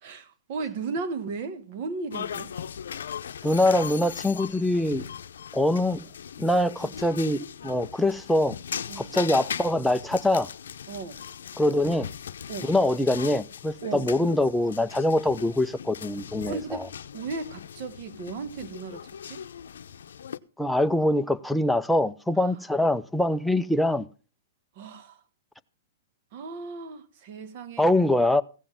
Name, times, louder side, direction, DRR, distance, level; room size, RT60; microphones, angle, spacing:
voice 1, 0.0-2.5 6.8-7.0 8.9-9.2 10.9-11.2 11.8-11.9 12.5-12.7 13.8-14.1 16.5-16.9 17.1-19.4 22.4-22.5 24.7-25.2 26.3-27.8, right 4 dB, 45° right, 1.5 m, -36 dB
sound 1, 2.1-20.4, left 8 dB, 85° left, 0.6 m, -39 dB
voice 2, 3.4-5.0 5.5-6.1 6.4-8.6 9.0-10.5 11.6-12.1 12.6-16.8 20.6-24.1 27.8-28.4, left 1 dB, ahead, 0.5 m, -24 dB
16.0 x 7.3 x 5.6 m
hypercardioid pair, 145°, 0 cm